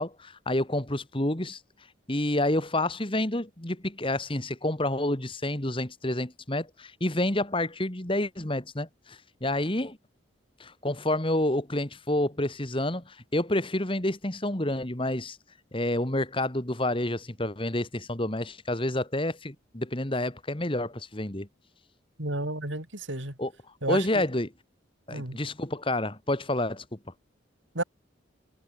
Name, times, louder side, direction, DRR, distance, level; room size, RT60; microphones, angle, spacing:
voice 1, 0.0-1.6 2.1-10.0 10.6-15.4 15.7-21.5 23.4-23.5 23.9-24.5 25.1-27.0, left 1 dB, 25° left, 2.1 m, -29 dB
voice 2, 22.2-23.3 23.8-24.2 25.1-25.4 27.7-27.8, right 2 dB, 70° right, 7.6 m, -31 dB
head